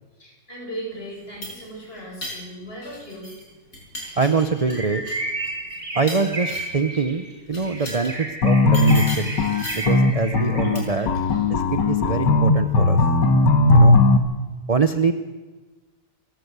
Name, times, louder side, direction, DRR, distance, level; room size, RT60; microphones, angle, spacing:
voice 1, 0.2-3.3 6.5-6.9 11.1-11.5 12.1-12.2, right 1 dB, 30° left, -2 dB, 8.4 m, -37 dB
sound 1, 1.1-3.4 3.7-6.9 7.5-8.2 8.7-10.0 10.7-11.1, left 1 dB, 50° left, 5.5 m, -37 dB
voice 2, 4.2-5.0 5.9-9.4 9.7-11.1 11.5-13.0 13.7-14.0 14.7-15.1, right 5 dB, 40° right, 9 dB, 0.5 m, -24 dB
Bird, 4.7-11.0, right 2 dB, 25° right, 2.3 m, -33 dB
sound 2, 8.4-14.2, left 2 dB, 75° left, 2.2 m, -17 dB
27.5 x 13.0 x 8.1 m, 1.3 s
omnidirectional pair, 1.9 m